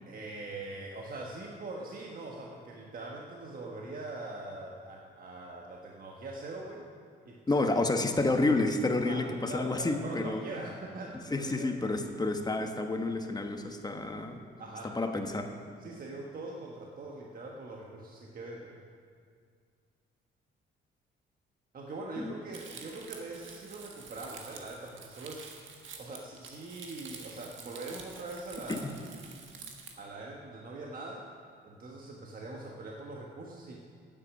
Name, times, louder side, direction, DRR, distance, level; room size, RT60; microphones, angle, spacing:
voice 1, 0.1-6.8 7.2-7.7 9.0-11.7 14.6-15.0 15.8-18.8 21.7-25.5 26.0-28.8 30.0-31.3 31.6-33.7, right 2 dB, 45° right, -1 dB, 1.3 m, -42 dB
voice 2, 7.5-10.4 11.3-14.4 14.8-15.5 22.2-22.3 28.7-28.8, left 2 dB, 20° left, 5 dB, 1.2 m, -29 dB
Crumpling crinkling, 22.5-29.9, right 5 dB, 75° right, 1.6 m, -48 dB
9.6 x 8.2 x 9.1 m, 2.2 s
cardioid pair, 90°, 20 cm